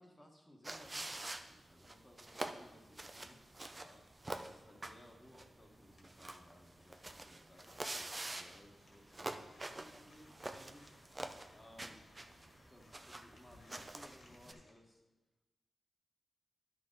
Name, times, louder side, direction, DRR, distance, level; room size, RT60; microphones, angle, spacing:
voice 1, 0.0-4.0 4.4-10.9 11.5-11.9 12.7-15.0, left 1 dB, 15° left, 0 dB, 1.3 m, -61 dB
sound 1, 0.6-14.5, right 2 dB, 25° right, 0.6 m, -47 dB
sound 2, 2.5-14.7, left 1 dB, 55° left, 1.8 m, -66 dB
11.0 x 6.5 x 3.9 m, 1.1 s
wide cardioid pair, 90°, 0 cm